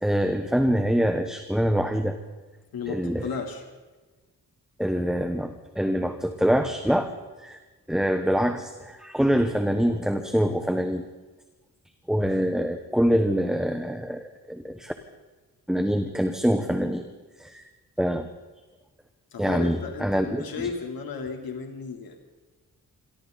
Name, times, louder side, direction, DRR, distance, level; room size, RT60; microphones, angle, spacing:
voice 1, 0.0-2.2 2.9-3.2 4.8-7.1 7.4-7.6 7.9-11.0 12.1-14.9 15.7-17.1 17.4-17.7 18.0-18.3 19.4-20.7, equal, ahead, 7 dB, 1.1 m, -25 dB
voice 2, 2.7-3.6 19.3-22.2, left 5 dB, 85° left, 3 dB, 3.5 m, -34 dB
28.5 x 22.5 x 4.0 m, 1.2 s
wide cardioid pair, 170°, 35 cm